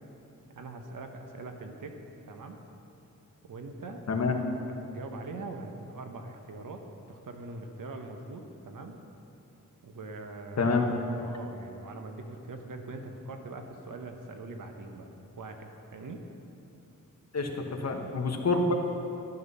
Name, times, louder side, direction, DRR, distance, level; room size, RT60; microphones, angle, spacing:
voice 1, 0.5-2.0 2.3-2.6 3.4-4.0 4.7-9.0 9.8-10.7 11.2-16.2, right 3 dB, 85° right, 4 dB, 1.2 m, -42 dB
voice 2, 10.6-10.9 17.3-18.7, left 3 dB, 55° left, 3 dB, 1.3 m, -27 dB
12.0 x 11.0 x 5.6 m, 2.8 s
wide cardioid pair, 140°, 32 cm